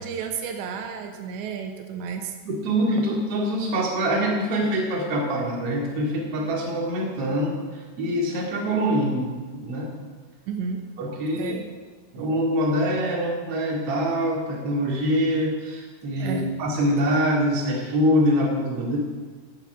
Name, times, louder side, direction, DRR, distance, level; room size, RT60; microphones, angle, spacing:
voice 1, 0.0-2.3 10.5-10.8 11.3-11.7 16.2-16.5, right 6 dB, 85° right, 4 dB, 3.1 m, -32 dB
voice 2, 2.4-9.3 9.6-9.9 11.0-11.6 12.1-19.0, equal, 40° right, -2 dB, 2.7 m, -24 dB
16.0 x 7.5 x 5.6 m, 1.5 s
omnidirectional pair, 5.1 m